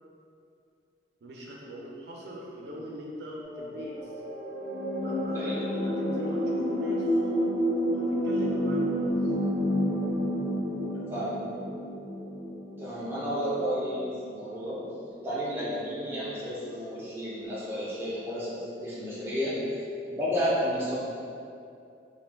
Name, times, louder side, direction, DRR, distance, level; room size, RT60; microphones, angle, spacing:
voice 1, 1.2-4.1 5.0-7.2 7.9-9.1, right 1 dB, 70° right, -3 dB, 0.4 m, -42 dB
sound 1, 3.4-14.2 15.1-15.2, equal, 30° left, 1.0 m, -30 dB
voice 2, 12.8-14.8 15.2-19.6 20.1-20.9, equal, 15° right, -8 dB, 0.5 m, -31 dB
2.4 x 2.2 x 3.3 m, 2.5 s
head